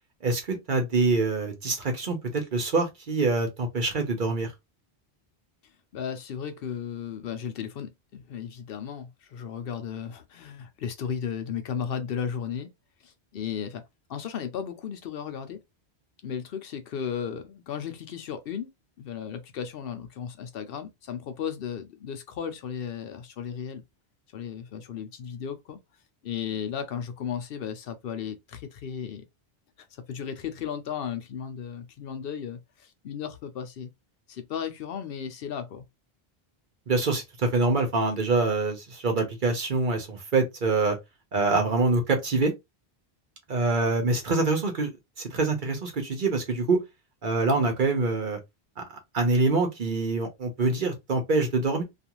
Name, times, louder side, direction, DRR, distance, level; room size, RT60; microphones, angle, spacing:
voice 1, 0.2-4.5 36.9-41.0 41.3-42.5 43.5-44.9 45.2-46.8 47.2-48.4 48.8-51.8, right 3 dB, 55° right, 0.9 m, -25 dB
voice 2, 5.9-12.7 13.0-13.8 14.1-15.6 16.2-18.7 19.0-23.8 24.3-25.8 26.2-29.2 29.9-33.9 34.3-35.9, left 8 dB, 65° left, 0.7 m, -35 dB
2.4 x 2.4 x 2.9 m
omnidirectional pair, 1.1 m